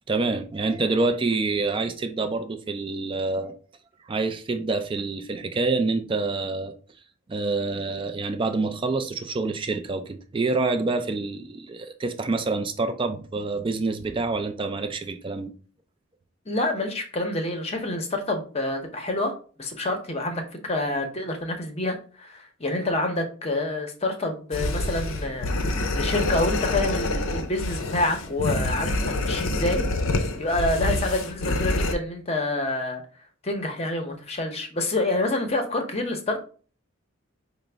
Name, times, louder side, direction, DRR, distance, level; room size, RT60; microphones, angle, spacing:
voice 1, 0.1-3.5 4.0-6.7 7.3-15.5 28.8-28.9, right 3 dB, 25° right, 0.3 m, -27 dB
voice 2, 16.5-19.3 19.6-33.0 33.4-36.4, left 2 dB, 30° left, 0.7 m, -27 dB
sound 1, 24.5-31.9, left 2 dB, 75° left, 0.6 m, -27 dB
5.0 x 2.1 x 3.3 m
head